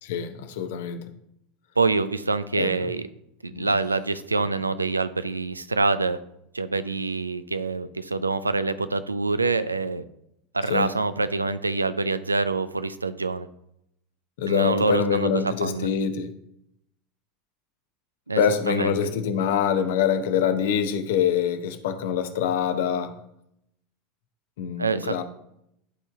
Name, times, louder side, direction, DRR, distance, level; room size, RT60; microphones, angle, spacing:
voice 1, 0.0-1.0 2.6-2.7 3.5-3.7 10.7-10.9 14.4-16.3 18.4-23.1 24.6-25.2, left 8 dB, 65° left, 9 dB, 0.7 m, -25 dB
voice 2, 1.8-3.1 3.4-6.2 6.5-10.0 10.5-13.5 14.5-15.9 18.3-19.0 24.8-25.2, right 3 dB, 90° right, 13 dB, 0.4 m, -26 dB
11.5 x 3.9 x 3.6 m, 0.78 s
figure-of-eight pair, 80°, 0 cm